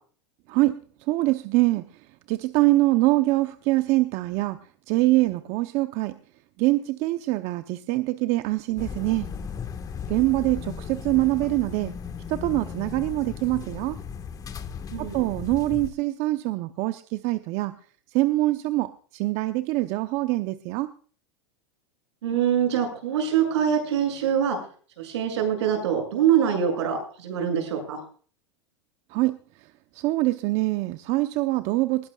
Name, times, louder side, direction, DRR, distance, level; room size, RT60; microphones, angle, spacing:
voice 1, 1.1-1.9 2.3-4.6 4.9-6.1 6.6-9.3 10.1-11.9 12.3-14.0 15.0-17.8 18.1-20.9 29.1-29.4 29.9-32.1, right 19 dB, 50° right, 10 dB, 0.8 m, -24 dB
sound 1, 8.8-15.9, left 6 dB, 25° left, 1.5 m, -36 dB
voice 2, 14.9-15.2 22.2-24.6 25.0-28.0, right 8 dB, 80° right, 4 dB, 7.1 m, -24 dB
20.0 x 16.5 x 2.4 m, 0.43 s
hypercardioid pair, 110°, 14 cm